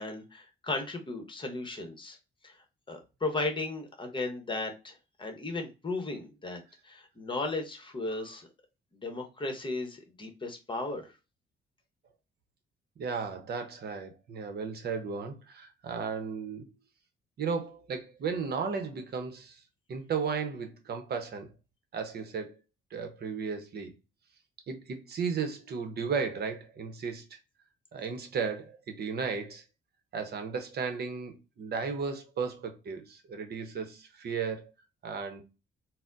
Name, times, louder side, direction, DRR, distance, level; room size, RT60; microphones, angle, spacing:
voice 1, 0.0-2.2 2.4-2.6 2.9-8.5 9.0-11.1, left 2 dB, 25° left, 0.9 m, -35 dB
voice 2, 13.0-16.7 17.4-19.6 19.9-21.5 21.9-22.5 22.9-23.9 24.7-27.3 27.9-29.6 30.1-34.7 35.0-35.4, right 5 dB, 55° right, 0.8 m, -35 dB
4.1 x 2.0 x 2.5 m
cardioid pair, 90°, 20 cm